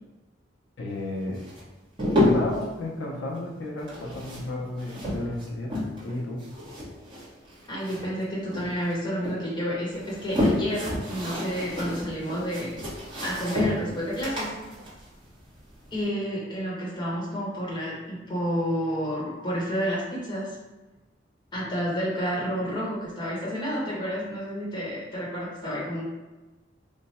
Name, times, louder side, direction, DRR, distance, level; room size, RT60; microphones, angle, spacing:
voice 1, 0.8-1.4 2.2-5.7 6.0-6.4, left 1 dB, 90° left, -2 dB, 0.7 m, -32 dB
sound 1, 1.3-2.7 3.8-6.1 6.4-8.2 8.5-9.4 9.9-16.0, left 1 dB, 25° right, 1.1 m, -29 dB
voice 2, 7.7-12.7 13.2-14.5 15.9-20.5 21.5-26.0, equal, 25° left, -6 dB, 1.1 m, -30 dB
3.3 x 2.2 x 4.1 m, 1.1 s
head